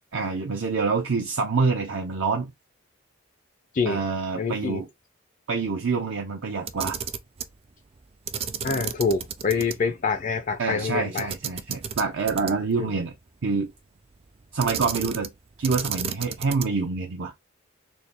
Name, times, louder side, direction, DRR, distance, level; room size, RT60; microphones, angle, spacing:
voice 1, 0.1-2.5 3.9-4.9 5.5-7.0 10.6-13.2 13.4-13.7 14.5-15.3 15.6-17.3, right 4 dB, 70° right, 0.6 m, -26 dB
voice 2, 4.4-4.8 8.6-11.3 12.8-12.9, left 4 dB, 40° left, 0.4 m, -26 dB
Camera, 6.6-7.5 8.3-9.8 10.1-10.2 11.2-12.8 14.6-15.4 15.6-16.8, right 7 dB, 30° right, 0.3 m, -32 dB
4.2 x 2.3 x 3.4 m
head